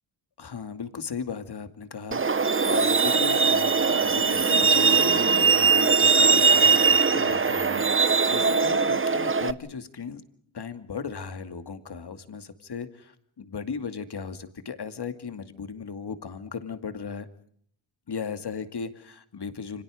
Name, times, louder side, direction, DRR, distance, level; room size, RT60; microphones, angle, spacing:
voice 1, 0.4-10.2 10.5-17.3 18.1-19.8, left 6 dB, 55° left, 9 dB, 2.4 m, -37 dB
Truck, 2.1-9.5, right 5 dB, 25° right, 0.9 m, -21 dB
29.0 x 25.5 x 5.0 m, 0.63 s
cardioid pair, 70°, 48 cm